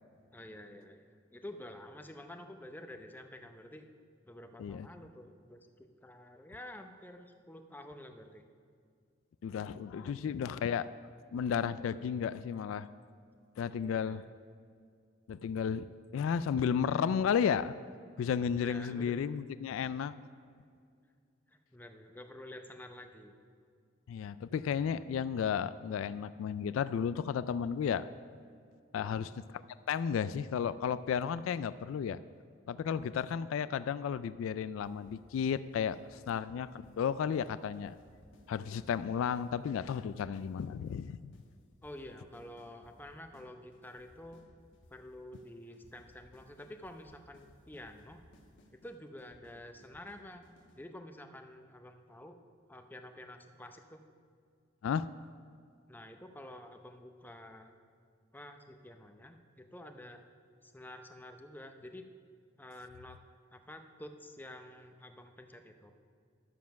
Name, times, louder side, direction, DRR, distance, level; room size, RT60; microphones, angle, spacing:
voice 1, 0.3-3.8 4.3-8.4 10.0-10.5 13.9-14.3 18.6-19.5 21.5-23.3 36.1-36.2 41.8-44.4 44.9-48.2 48.7-52.4 52.7-54.0 55.9-57.7 58.3-60.2 60.6-62.1 62.6-63.2 63.5-65.9, left 1 dB, 10° left, 6 dB, 0.6 m, -49 dB
voice 2, 9.4-10.9 11.3-12.9 13.6-14.2 15.3-17.7 18.2-20.1 24.1-28.0 28.9-32.2 32.7-37.9 38.5-41.4 54.8-55.1, left 7 dB, 80° left, 15 dB, 0.3 m, -33 dB
sound 1, 34.8-35.5 35.7-37.0 37.3-37.5 37.7-40.9 41.3-41.4 41.7-43.5 43.7-45.0 45.3-45.5 45.7-50.8, left 1 dB, 60° left, 1.3 m, -62 dB
11.5 x 7.3 x 5.8 m, 2.2 s
head